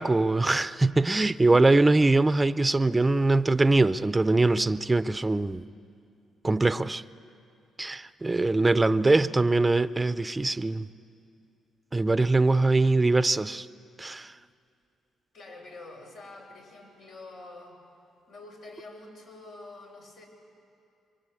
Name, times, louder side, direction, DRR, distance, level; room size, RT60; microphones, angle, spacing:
voice 1, 0.0-5.7 6.4-7.0 7.8-10.9 11.9-13.7 14.0-14.3, right 2 dB, 15° right, 0.5 m, -22 dB
voice 2, 15.3-17.8 18.3-20.3, left 2 dB, 80° left, 6.0 m, -46 dB
25.5 x 23.0 x 8.5 m
cardioid pair, 90°, 0 cm